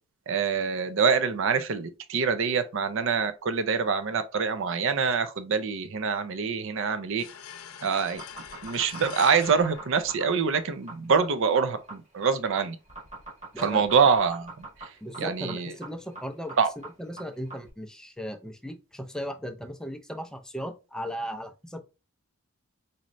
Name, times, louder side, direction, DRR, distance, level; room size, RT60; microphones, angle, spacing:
voice 1, 0.3-7.2 7.8-8.2 8.6-12.8 13.6-14.7 15.2-15.7 16.6-16.7, right 5 dB, 65° right, 0.5 m, -25 dB
sound 1, 7.2-10.8, left 8 dB, 80° left, 0.6 m, -43 dB
sound 2, 8.0-17.7, right 3 dB, 35° right, 1.4 m, -43 dB
voice 2, 15.0-21.8, equal, 5° left, 0.4 m, -37 dB
4.1 x 3.1 x 2.5 m
head